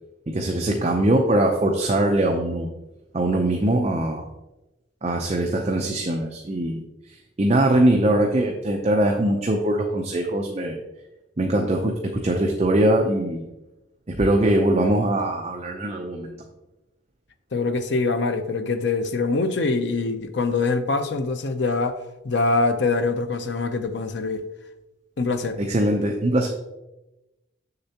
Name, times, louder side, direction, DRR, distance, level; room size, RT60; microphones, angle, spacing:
voice 1, 0.3-2.7 3.1-4.3 5.0-6.8 7.4-10.8 11.4-13.5 14.1-16.4 25.6-26.5, right 1 dB, 35° right, 0.6 m, -22 dB
voice 2, 17.5-22.0 22.2-24.4 25.2-25.6, left 3 dB, 65° left, 0.6 m, -24 dB
6.9 x 6.6 x 2.8 m
head